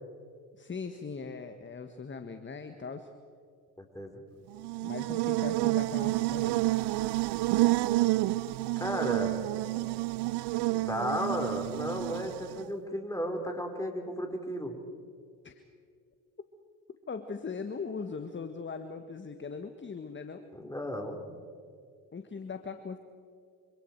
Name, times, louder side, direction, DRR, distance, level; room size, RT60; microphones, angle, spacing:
voice 1, 0.6-3.1 4.8-6.7 15.4-15.6 17.1-20.5 22.1-23.0, left 5 dB, 25° left, 8 dB, 1.6 m, -40 dB
voice 2, 3.8-4.2 8.8-9.4 10.7-14.8 20.5-21.2, equal, 5° left, 4 dB, 4.3 m, -34 dB
Buzz, 4.5-12.7, right 18 dB, 65° right, 0.7 m, -29 dB
26.0 x 26.0 x 4.7 m, 2.2 s
hypercardioid pair, 60°, 43 cm